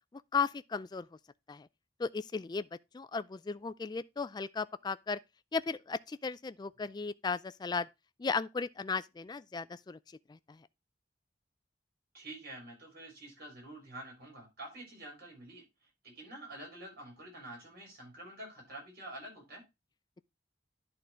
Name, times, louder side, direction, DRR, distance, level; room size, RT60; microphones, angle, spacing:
voice 1, 0.1-1.1 1.5-1.7 2.0-2.7 2.9-5.2 5.5-7.9 8.2-10.0 10.3-10.6, left 5 dB, 25° left, 0.3 m, -35 dB
voice 2, 12.1-15.6 16.0-19.6, right 1 dB, 60° right, 4.5 m, -48 dB
10.5 x 3.9 x 4.3 m
head